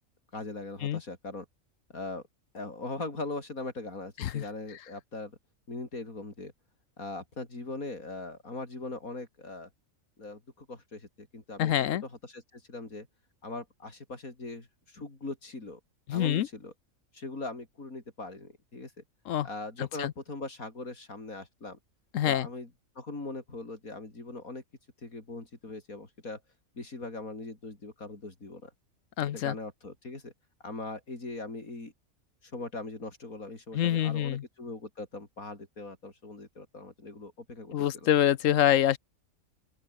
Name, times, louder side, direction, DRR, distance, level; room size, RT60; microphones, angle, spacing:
voice 1, 0.3-1.5 1.9-2.2 2.5-5.4 5.7-6.5 7.0-9.7 10.2-11.7 12.0-13.1 13.4-15.8 16.1-16.7 17.1-19.0 19.4-21.8 22.2-22.7 23.0-24.6 25.0-26.4 26.8-28.7 29.3-30.3 30.6-31.9 32.4-38.1, left 2 dB, 85° left, 5.2 m, -40 dB
voice 2, 11.6-12.0 16.1-16.5 19.3-19.5 19.8-20.1 22.1-22.5 29.2-29.5 33.7-34.4 37.7-39.0, left 11 dB, 70° left, 1.1 m, -26 dB
open air
omnidirectional pair, 1.4 m